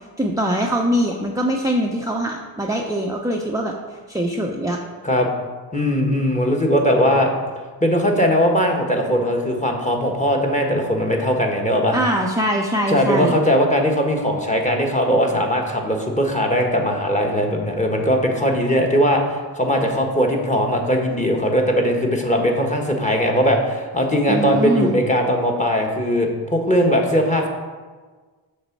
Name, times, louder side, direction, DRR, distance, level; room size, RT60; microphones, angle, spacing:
voice 1, 0.2-3.7 4.1-4.8 11.9-13.4 24.3-25.0, equal, 5° right, 0 dB, 0.7 m, -22 dB
voice 2, 5.7-7.3 7.8-12.0 12.9-27.5, equal, 15° left, 1 dB, 1.3 m, -19 dB
6.5 x 6.2 x 4.6 m, 1.4 s
cardioid pair, 65°, 46 cm